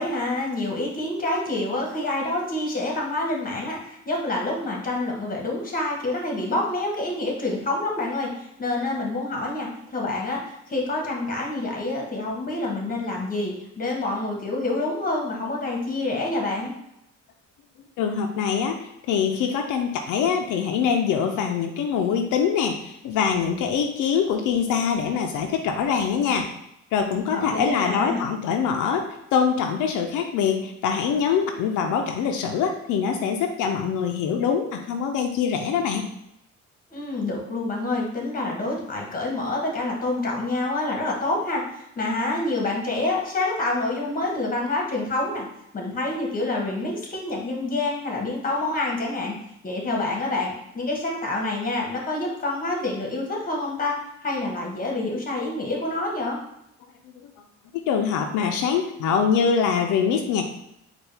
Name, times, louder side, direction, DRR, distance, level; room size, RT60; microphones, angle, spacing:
voice 1, 0.0-16.7 27.3-28.3 36.9-45.5 45.7-49.4 49.6-54.0 54.2-56.4, left 2 dB, 30° left, -1 dB, 1.3 m, -27 dB
voice 2, 18.0-26.5 26.9-36.1 57.7-60.5, left 7 dB, 90° left, 3 dB, 0.5 m, -24 dB
4.5 x 2.4 x 3.3 m, 0.80 s
cardioid pair, 90°, 30 cm